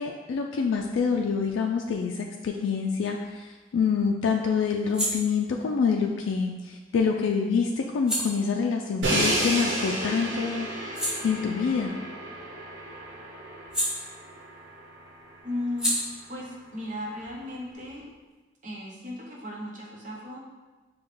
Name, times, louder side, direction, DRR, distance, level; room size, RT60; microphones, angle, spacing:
voice 1, 0.0-11.9, left 5 dB, 80° left, 1 dB, 0.3 m, -26 dB
sound 1, 3.2-10.0 10.4-14.7 14.9-18.3, equal, 5° right, 0.9 m, -36 dB
Crash cymbal, 9.0-15.0, right 1 dB, 70° right, 1.1 m, -31 dB
voice 2, 15.4-16.0 16.3-18.1 18.6-20.4, left 1 dB, 45° right, -3 dB, 0.9 m, -35 dB
5.2 x 2.3 x 3.7 m, 1.2 s
head